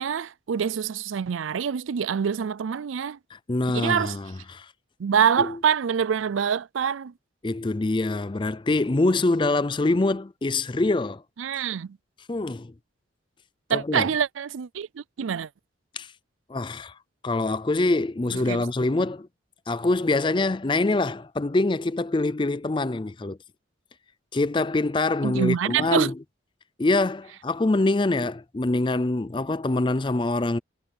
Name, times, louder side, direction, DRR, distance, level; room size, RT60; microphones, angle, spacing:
voice 1, 0.0-3.2 3.7-4.2 5.0-7.1 11.4-12.0 13.7-15.5 18.3-18.7 25.2-26.1, right 7 dB, 85° right, 0.4 m, -25 dB
voice 2, 3.3-4.7 5.4-5.5 7.4-11.2 12.3-12.7 13.7-14.1 16.0-16.1 16.5-17.0 17.2-19.3 19.7-23.4 24.3-26.1 26.8-30.6, left 2 dB, 25° left, 0.4 m, -25 dB
head